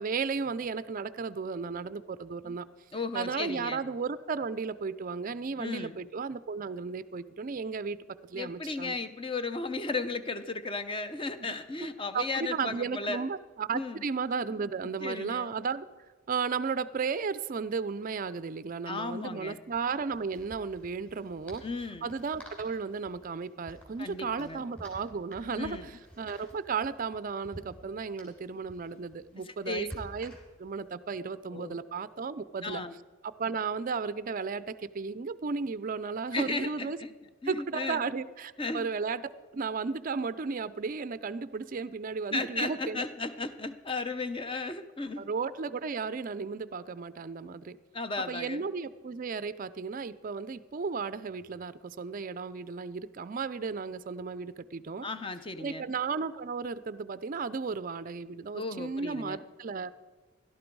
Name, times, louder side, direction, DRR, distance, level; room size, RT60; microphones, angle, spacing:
voice 1, 0.0-2.7 3.1-8.0 8.3-9.0 12.1-15.8 16.3-21.6 22.0-30.3 30.6-32.8 33.2-37.0 37.5-43.0 45.2-47.8 48.3-55.1 55.6-59.9, right 5 dB, 40° right, 15 dB, 0.4 m, -34 dB
voice 2, 2.9-3.8 5.6-6.0 8.3-13.3 13.7-14.1 14.8-15.5 18.9-19.6 21.6-22.1 24.0-24.6 25.5-25.9 29.4-29.9 31.5-31.8 32.6-32.9 36.3-37.1 37.4-38.0 38.6-38.9 42.3-45.3 47.9-48.7 55.0-55.8 58.5-59.4, left 3 dB, 25° left, 11 dB, 0.6 m, -35 dB
sound 1, 17.7-17.8 18.0-18.1 19.6-30.8, right 1 dB, 5° left, 3.5 m, -51 dB
17.0 x 12.0 x 4.6 m, 1.4 s
head